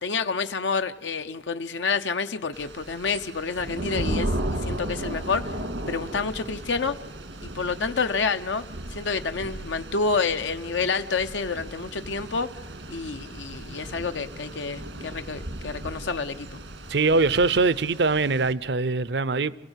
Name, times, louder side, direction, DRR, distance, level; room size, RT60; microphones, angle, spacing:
voice 1, 0.0-5.4 5.9-7.0 7.4-8.6 8.9-12.5 12.9-16.5, left 4 dB, 90° left, 0.8 m, -28 dB
Thunder / Rain, 2.5-18.5, right 1 dB, 85° right, 2.0 m, -35 dB
voice 2, 16.9-19.5, right 3 dB, 70° right, 0.6 m, -22 dB
28.5 x 16.5 x 8.1 m
head